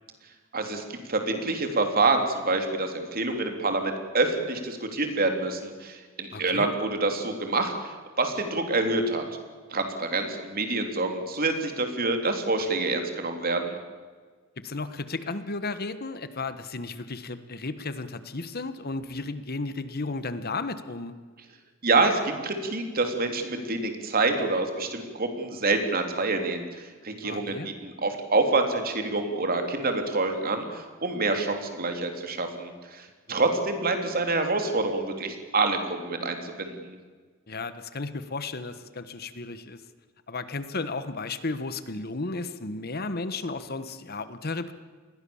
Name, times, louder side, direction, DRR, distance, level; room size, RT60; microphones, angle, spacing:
voice 1, 0.5-7.9 8.2-9.2 9.7-13.8 21.8-37.0, right 3 dB, 45° right, 5 dB, 3.4 m, -27 dB
voice 2, 6.3-6.7 14.6-21.1 27.2-27.7 37.5-39.8 40.3-44.7, left 3 dB, 50° left, 12 dB, 1.3 m, -34 dB
28.0 x 20.5 x 7.2 m, 1.5 s
head